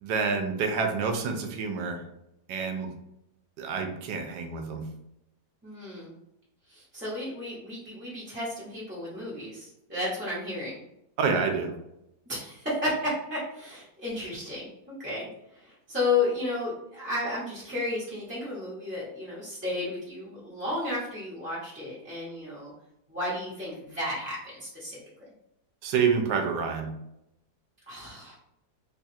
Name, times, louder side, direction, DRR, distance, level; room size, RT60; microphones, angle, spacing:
voice 1, 0.0-2.0 2.5-2.9 3.6-4.8 11.2-11.7 25.8-26.9, right 5 dB, 85° right, 4 dB, 1.3 m, -28 dB
voice 2, 5.6-6.1 6.7-10.7 12.3-15.3 15.6-22.7 23.1-25.0 27.9-28.3, left 2 dB, 10° right, -9 dB, 0.9 m, -33 dB
3.3 x 2.4 x 4.1 m, 0.83 s
omnidirectional pair, 1.8 m